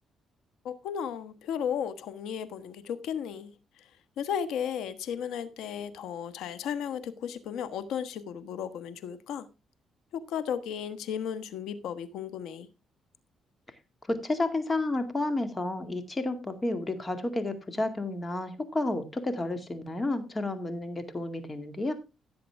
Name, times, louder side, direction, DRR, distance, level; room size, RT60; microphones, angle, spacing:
voice 1, 0.6-3.9 4.2-9.5 10.1-12.7, left 8 dB, 85° left, 13 dB, 1.2 m, -34 dB
voice 2, 14.1-21.9, left 2 dB, 25° left, 9 dB, 2.1 m, -31 dB
16.0 x 7.7 x 3.5 m, 0.28 s
cardioid pair, 90°, 0 cm